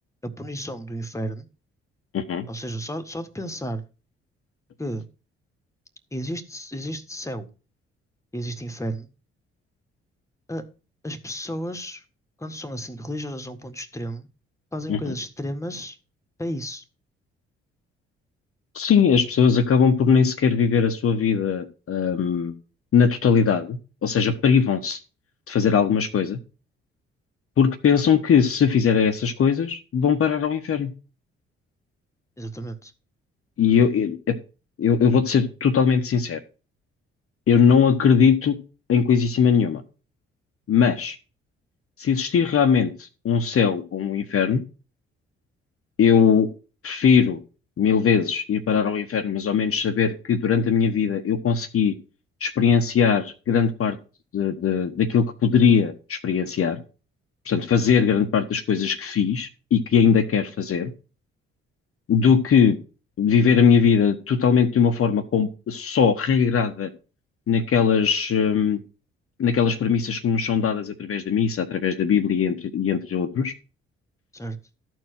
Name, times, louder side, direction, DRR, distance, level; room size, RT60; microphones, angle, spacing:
voice 1, 0.2-1.5 2.5-3.8 4.8-5.1 6.1-7.5 8.3-9.1 10.5-10.6 11.0-12.0 12.4-14.3 14.7-16.0 16.4-16.8 32.4-32.9 74.3-74.6, equal, 10° left, 1.6 m, -32 dB
voice 2, 2.1-2.5 14.9-15.1 18.7-22.5 22.9-25.0 25.5-26.4 27.6-30.9 33.6-34.4 34.8-36.4 37.5-38.6 38.9-39.8 40.7-41.2 42.0-44.6 46.0-46.5 46.8-47.4 47.8-51.9 52.4-54.0 54.3-56.8 57.4-60.9 62.1-62.8 63.2-66.9 67.5-68.8 69.4-73.5, left 6 dB, 45° left, 1.2 m, -20 dB
13.5 x 4.6 x 6.4 m
figure-of-eight pair, 40°, 31 cm